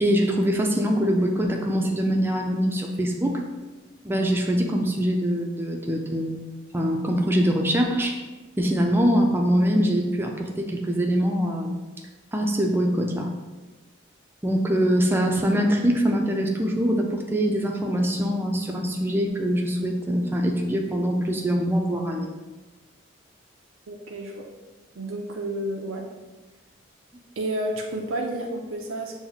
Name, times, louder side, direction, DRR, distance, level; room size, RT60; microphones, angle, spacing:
voice 1, 0.0-3.4 4.0-6.4 6.7-8.2 8.6-11.8 12.3-13.3 14.4-22.3, equal, 10° right, 2 dB, 0.4 m, -23 dB
voice 2, 23.9-24.4 24.9-26.1 27.4-29.2, right 1 dB, 85° right, 0 dB, 0.5 m, -30 dB
6.0 x 2.1 x 3.9 m, 1.2 s
head